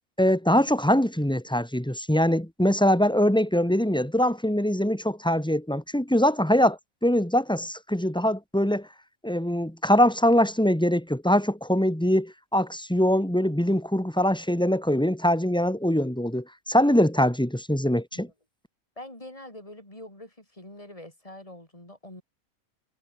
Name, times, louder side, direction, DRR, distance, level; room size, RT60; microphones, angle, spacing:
voice 1, 0.2-8.9 9.2-18.3, equal, 5° left, 2.2 m, -23 dB
voice 2, 19.0-22.2, left 1 dB, 25° left, 6.6 m, -44 dB
omnidirectional pair, 1.5 m